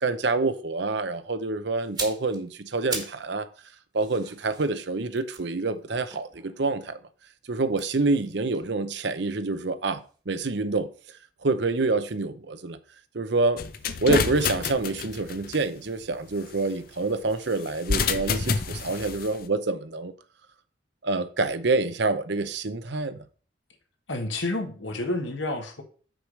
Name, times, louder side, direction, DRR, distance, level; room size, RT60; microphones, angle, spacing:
voice 1, 0.0-3.5 3.9-7.0 7.5-10.9 11.4-12.8 13.1-13.6 14.0-20.1 21.0-23.2, right 3 dB, 60° right, 0.7 m, -27 dB
sound 1, 1.8-3.3 3.6-6.9 7.7-9.7 10.0-10.2, right 4 dB, 20° right, 1.5 m, -40 dB
sound 2, 13.6-15.6 17.7-19.3, left 5 dB, 45° left, 0.6 m, -28 dB
voice 2, 24.1-25.8, left 2 dB, 70° left, 1.5 m, -29 dB
6.3 x 4.9 x 6.4 m
head